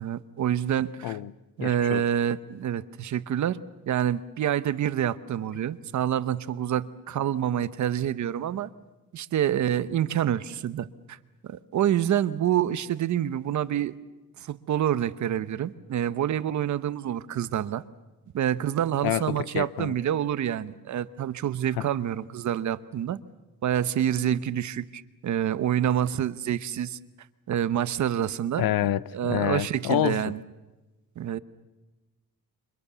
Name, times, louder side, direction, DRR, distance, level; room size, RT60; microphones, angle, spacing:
voice 1, 0.0-1.2 1.6-3.6 3.9-8.7 9.1-11.2 11.4-13.9 14.4-17.8 18.3-23.2 23.6-27.0 27.5-30.4 31.2-31.4, right 10 dB, 55° right, 0.9 m, -27 dB
voice 2, 1.6-2.0 19.0-19.9 21.8-21.9 28.6-30.2, left 12 dB, 75° left, 0.8 m, -27 dB
29.0 x 25.5 x 6.9 m
cardioid pair, 170°, 36 cm